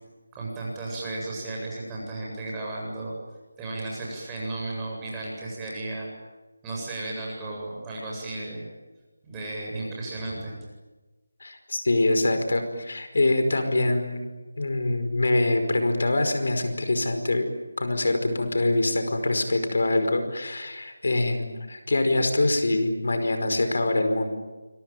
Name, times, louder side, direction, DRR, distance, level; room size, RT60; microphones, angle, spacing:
voice 1, 0.3-3.1 3.6-6.1 6.6-8.7 9.2-10.5, right 2 dB, 10° right, -3 dB, 8.0 m, -34 dB
voice 2, 11.4-14.2 14.6-17.5 17.8-24.3, left 2 dB, 65° left, 7 dB, 5.2 m, -24 dB
26.5 x 23.5 x 9.3 m, 1.2 s
figure-of-eight pair, 165°, 0 cm